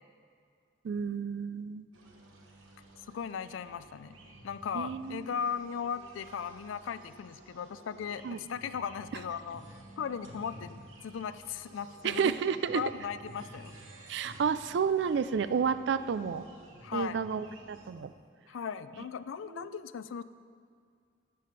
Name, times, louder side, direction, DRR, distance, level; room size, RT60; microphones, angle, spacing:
voice 1, 0.8-1.9 4.7-5.4 8.2-8.4 12.0-12.8 14.1-16.4 16.9-18.1 19.5-19.8, right 6 dB, 60° right, 13 dB, 0.3 m, -31 dB
sound 1, 1.9-17.9, right 1 dB, 80° right, 1.2 m, -53 dB
voice 2, 3.1-4.1 4.4-12.3 12.7-13.7 16.8-17.2 18.5-20.2, left 7 dB, 75° left, 14 dB, 0.3 m, -37 dB
16.0 x 6.8 x 3.3 m, 2.2 s
head